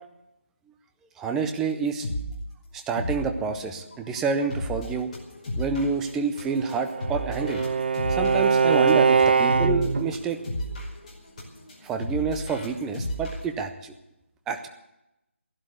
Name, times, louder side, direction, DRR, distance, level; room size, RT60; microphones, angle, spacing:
voice 1, 1.2-2.1 2.9-5.1 5.6-7.6 8.2-10.4 11.8-13.9 14.5-14.7, right 5 dB, 5° right, 6 dB, 0.5 m, -28 dB
sound 1, 1.5-1.6 1.9-2.4 2.8-13.4, equal, 30° left, 5.1 m, -34 dB
Bowed string instrument, 6.5-10.1, right 5 dB, 45° right, 0.9 m, -22 dB
15.0 x 11.5 x 8.0 m, 0.90 s
figure-of-eight pair, 170°, 7 cm